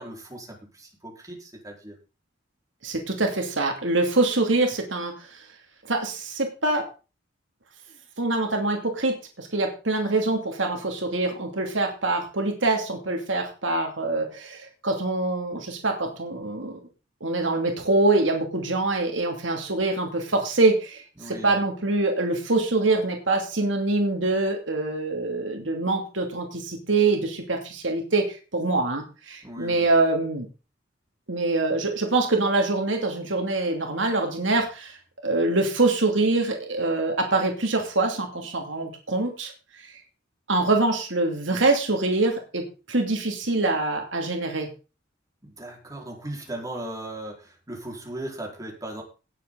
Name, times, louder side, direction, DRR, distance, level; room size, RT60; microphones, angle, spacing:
voice 1, 0.0-2.0 21.2-21.6 29.4-29.9 45.4-49.0, right 1 dB, 20° right, -1 dB, 4.7 m, -37 dB
voice 2, 2.8-5.1 5.9-6.9 8.2-16.8 17.2-21.0 21.3-30.5 31.3-34.9 35.2-39.5 40.5-42.6 42.9-44.7, right 2 dB, 80° right, 3 dB, 2.7 m, -24 dB
18.0 x 7.8 x 4.0 m, 0.33 s
head